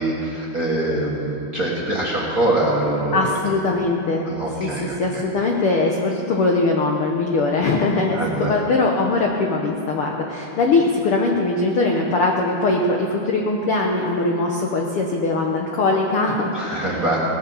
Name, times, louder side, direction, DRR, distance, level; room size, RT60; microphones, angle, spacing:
voice 1, 0.0-3.2 4.2-5.2 8.1-8.5 16.5-17.2, right 1 dB, 40° right, -5 dB, 1.3 m, -23 dB
voice 2, 3.1-4.3 4.6-17.0, left 3 dB, 85° left, 0 dB, 1.2 m, -21 dB
18.0 x 9.4 x 7.1 m, 2.7 s
omnidirectional pair, 4.1 m